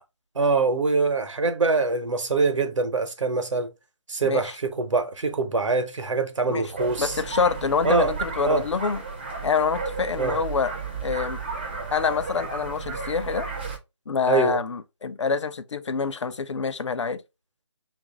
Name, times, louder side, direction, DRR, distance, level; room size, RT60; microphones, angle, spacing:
voice 1, 0.3-3.7 4.1-7.2 7.8-8.1 8.4-8.6 10.2-10.4 14.3-14.6, right 3 dB, 90° right, 0.8 m, -24 dB
voice 2, 4.2-4.5 6.5-6.6 7.0-9.0 9.4-10.7 11.0-11.4 11.9-13.5 14.1-17.2, left 5 dB, 75° left, 0.5 m, -26 dB
sound 1, 6.8-13.8, right 4 dB, 20° right, 0.4 m, -33 dB
3.1 x 2.5 x 3.6 m
figure-of-eight pair, 165°, 15 cm